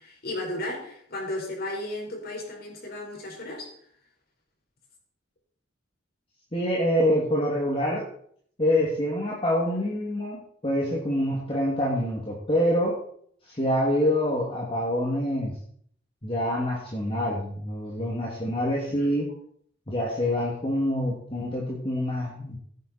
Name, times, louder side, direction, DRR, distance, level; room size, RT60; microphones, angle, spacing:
voice 1, 0.0-3.7 18.8-19.1, left 1 dB, 55° left, 0 dB, 5.2 m, -34 dB
voice 2, 6.5-8.0 8.6-13.0 13.5-15.5 16.2-19.3 19.9-22.6, equal, 30° left, -4 dB, 2.8 m, -26 dB
16.5 x 9.5 x 4.5 m, 0.62 s
head